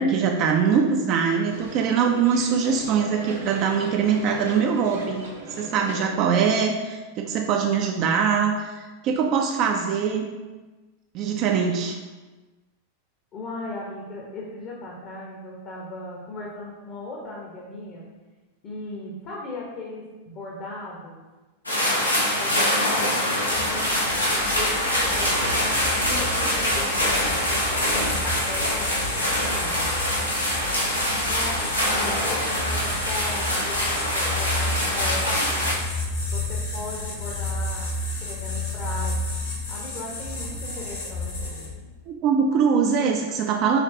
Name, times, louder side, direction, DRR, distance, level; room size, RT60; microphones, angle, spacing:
voice 1, 0.0-5.3 5.6-10.3 11.1-12.0 42.1-43.8, right 6 dB, 40° right, 2 dB, 0.4 m, -22 dB
sound 1, 1.4-6.7, right 1 dB, 70° right, 0.9 m, -39 dB
voice 2, 13.3-18.1 18.6-21.2 22.4-23.9 24.5-29.9 31.3-35.8 36.3-37.9 38.2-39.3 39.7-41.6, left 2 dB, 35° left, -3 dB, 0.9 m, -37 dB
sound 2, 21.7-35.7, left 1 dB, 85° left, 0.9 m, -24 dB
sound 3, 23.5-41.9, left 2 dB, 65° left, 1.4 m, -32 dB
5.6 x 3.3 x 2.7 m, 1.2 s
figure-of-eight pair, 90°, 0 cm